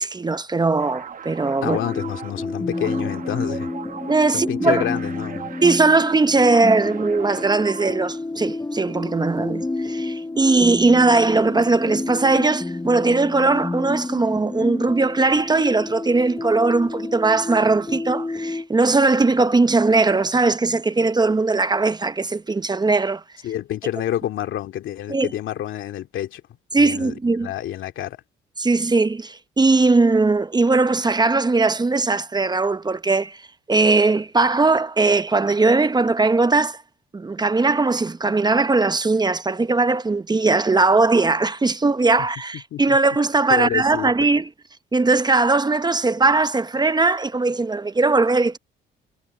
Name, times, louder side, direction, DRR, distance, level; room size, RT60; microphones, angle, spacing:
voice 1, 0.0-1.8 4.1-4.8 5.6-23.2 25.1-25.3 26.7-27.5 28.6-33.4 33.7-36.8 37.1-44.5 44.9-48.6, right 3 dB, 20° right, 0.8 m, -19 dB
sound 1, 0.7-8.2, right 6 dB, 45° right, 1.4 m, -38 dB
voice 2, 1.6-3.7 4.3-5.5 23.4-26.4 26.8-27.1 27.4-28.2 42.7-43.0 43.5-44.3, left 12 dB, 80° left, 2.3 m, -28 dB
sound 2, 1.7-18.7, left 2 dB, 10° left, 0.7 m, -30 dB
cardioid pair, 90°, 20 cm